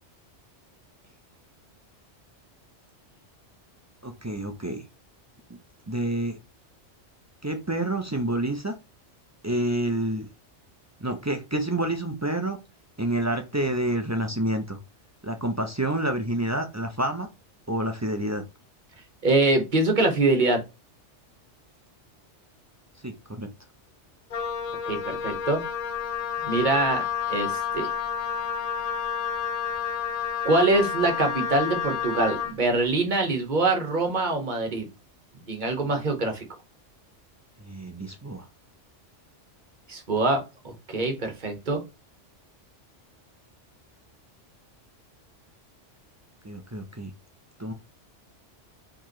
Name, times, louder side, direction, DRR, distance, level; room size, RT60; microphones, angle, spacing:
voice 1, 4.0-4.8 5.9-6.4 7.4-8.7 9.4-10.3 11.0-12.6 13.0-14.8 15.2-17.3 17.7-18.4 23.0-23.5 37.6-38.5 46.4-47.1 47.6-47.7, right 1 dB, 25° right, 5 dB, 0.3 m, -28 dB
voice 2, 19.2-20.6 24.9-25.6 26.4-27.9 30.4-34.9 35.5-36.4 39.9-41.8, right 2 dB, 40° right, 5 dB, 1.2 m, -24 dB
Wind instrument woodwind instrument, 24.3-32.6, left 7 dB, 55° left, 0.4 m, -30 dB
4.6 x 3.7 x 3.1 m, 0.26 s
omnidirectional pair, 1.2 m